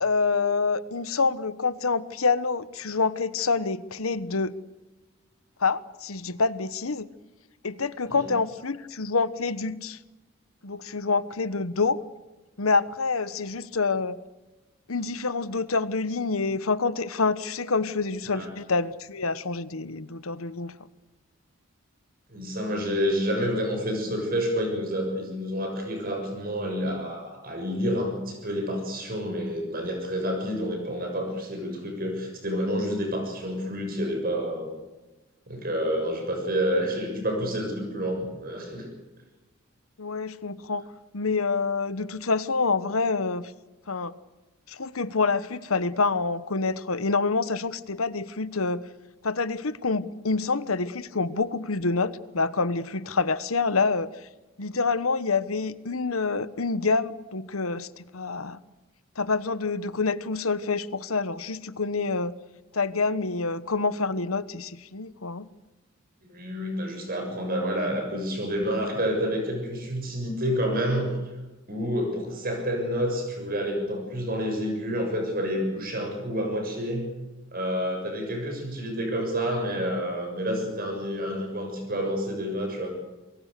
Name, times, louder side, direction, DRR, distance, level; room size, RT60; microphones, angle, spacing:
voice 1, 0.0-4.5 5.6-7.1 7.6-10.0 10.6-12.0 12.6-14.2 14.9-20.9 40.0-40.8 41.1-43.5 43.9-44.1 44.7-48.8 49.2-54.1 54.6-57.9 58.1-58.6 59.2-62.3 62.7-65.5, left 4 dB, 85° left, 15 dB, 1.2 m, -27 dB
voice 2, 22.3-34.7 35.5-38.9 66.3-71.1 71.7-77.1 77.5-82.9, equal, 45° right, 3 dB, 6.9 m, -29 dB
28.5 x 21.5 x 6.8 m, 1.1 s
head